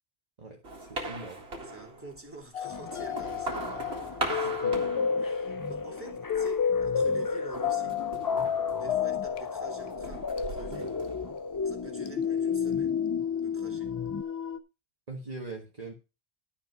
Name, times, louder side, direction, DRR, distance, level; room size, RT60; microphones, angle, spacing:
voice 1, 0.4-1.4 4.2-4.9 15.1-15.9, right 3 dB, 40° right, 0 dB, 1.6 m, -42 dB
sound 1, 0.6-2.3 2.8-5.8 6.1-6.7 7.5-9.4 9.8-11.9, right 2 dB, 75° right, 2.4 m, -39 dB
voice 2, 1.6-4.7 5.2-8.1 8.7-11.0 11.6-13.0 13.4-14.0, right 4 dB, 10° right, 0 dB, 2.8 m, -47 dB
Wicked and mysterious music, 2.5-14.6, left 7 dB, 70° left, 1.0 m, -31 dB
sound 2, 2.6-14.2, left 4 dB, 35° left, 0.3 m, -39 dB
11.5 x 5.5 x 6.1 m, 0.29 s
omnidirectional pair, 1.1 m